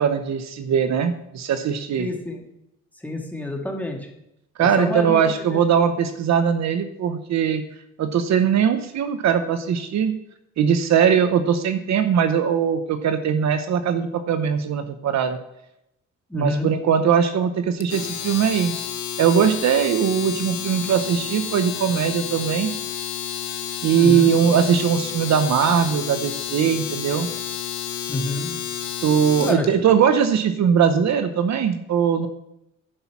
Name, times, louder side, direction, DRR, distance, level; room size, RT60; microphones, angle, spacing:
voice 1, 0.0-2.1 4.6-7.6 8.0-10.1 10.6-15.4 16.3-18.7 19.2-22.7 23.8-27.3 29.0-32.3, right 7 dB, 65° right, 9 dB, 0.8 m, -20 dB
voice 2, 2.0-2.4 3.0-4.1 4.6-5.2 5.5-5.6 16.3-16.7 24.0-24.3 28.1-28.6 29.4-29.7, left 2 dB, 5° left, 1 dB, 2.0 m, -28 dB
Domestic sounds home sounds, 17.8-29.6, left 9 dB, 75° left, 1.1 m, -30 dB
9.9 x 5.7 x 5.9 m, 0.83 s
cardioid pair, 90°, 30 cm